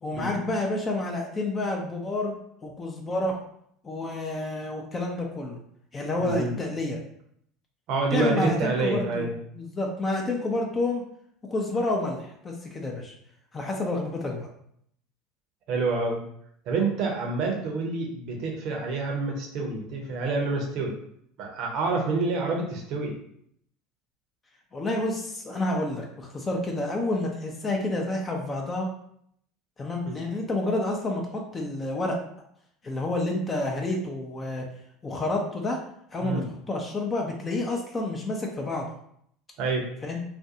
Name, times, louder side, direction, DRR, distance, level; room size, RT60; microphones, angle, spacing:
voice 1, 0.0-2.3 2.6-3.4 3.8-5.6 5.9-7.0 8.1-9.3 9.5-11.0 11.4-13.1 13.5-14.5 24.7-28.9 29.8-32.2 32.8-34.7 35.0-35.8 36.1-38.9 40.0-40.2, left 2 dB, 25° left, 1 dB, 0.5 m, -29 dB
voice 2, 6.2-6.5 7.9-9.3 15.7-16.2 16.7-20.9 21.4-23.1 30.1-30.2 36.2-36.4 39.6-39.9, right 3 dB, 55° right, 1 dB, 0.7 m, -27 dB
2.5 x 2.2 x 2.7 m, 0.68 s
hypercardioid pair, 75°, 0 cm